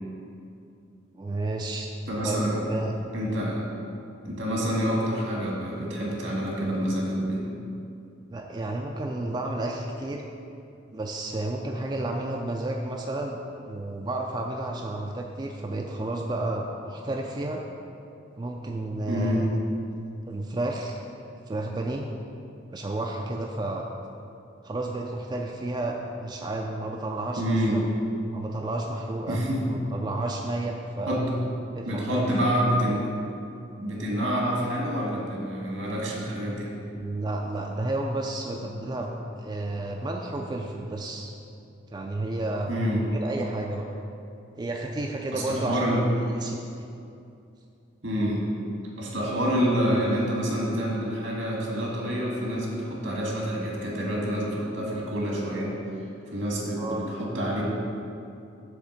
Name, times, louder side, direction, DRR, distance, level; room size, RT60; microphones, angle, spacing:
voice 1, 1.1-1.9 2.2-3.0 8.3-10.2 10.9-13.4 13.7-17.6 18.4-19.5 20.3-21.0 21.5-22.1 22.7-23.9 24.6-27.6 28.3-29.4 29.7-31.2 31.8-32.3 37.0-39.1 39.4-41.3 41.9-43.9 44.6-45.9 46.3-46.6 56.8-57.1, right 2 dB, 20° right, 1 dB, 0.3 m, -31 dB
voice 2, 2.1-2.6 3.1-3.6 4.2-7.4 19.1-19.4 27.4-27.8 29.3-29.6 31.0-31.2 31.8-33.1 33.8-36.7 42.7-43.0 45.3-46.0 48.0-48.4 49.0-55.7 56.3-57.6, equal, 80° right, -3 dB, 1.7 m, -27 dB
8.0 x 3.5 x 6.4 m, 2.6 s
head